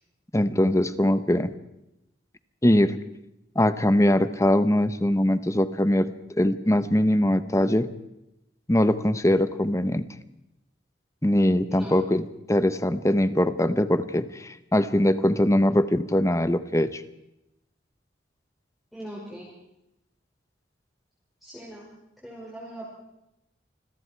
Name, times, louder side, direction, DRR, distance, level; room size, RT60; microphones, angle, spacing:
voice 1, 0.3-1.5 2.6-2.9 3.5-6.1 6.4-7.9 8.7-10.1 11.2-17.0, left 1 dB, 15° left, 12 dB, 1.0 m, -22 dB
voice 2, 18.9-19.5 21.4-21.9 22.2-22.9, right 1 dB, ahead, -7 dB, 5.9 m, -40 dB
28.5 x 21.5 x 4.7 m, 0.87 s
head